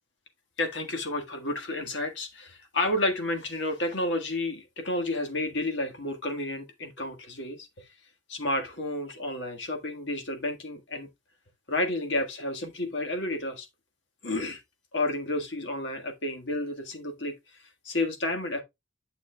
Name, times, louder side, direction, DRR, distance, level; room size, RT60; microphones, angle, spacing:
voice 1, 0.6-7.8 8.3-11.1 11.7-13.7 14.2-14.6 14.9-17.3 17.8-18.6, left 2 dB, 70° left, 1.6 m, -31 dB
9.1 x 6.9 x 2.2 m
head